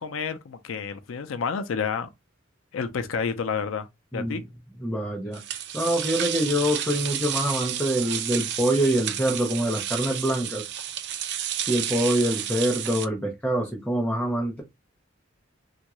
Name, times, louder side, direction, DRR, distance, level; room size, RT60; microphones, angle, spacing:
voice 1, 0.0-2.1 2.7-3.9 4.1-4.4, left 6 dB, 75° left, 0.4 m, -29 dB
voice 2, 4.1-4.4 4.8-5.4 5.7-10.7 11.7-14.6, right 1 dB, 5° left, 0.7 m, -25 dB
sound 1, 5.3-13.1, right 10 dB, 60° right, 0.4 m, -31 dB
3.5 x 2.4 x 3.0 m
head